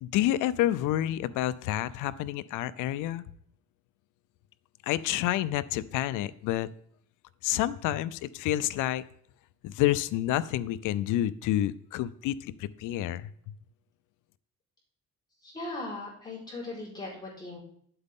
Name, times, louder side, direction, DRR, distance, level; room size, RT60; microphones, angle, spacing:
voice 1, 0.0-3.2 4.9-6.7 7.4-9.0 9.6-13.3, left 13 dB, 90° left, 16 dB, 0.6 m, -29 dB
voice 2, 15.4-17.6, left 2 dB, 15° left, -7 dB, 4.6 m, -38 dB
9.9 x 7.9 x 3.7 m, 0.65 s
cardioid pair, 160°, 30 cm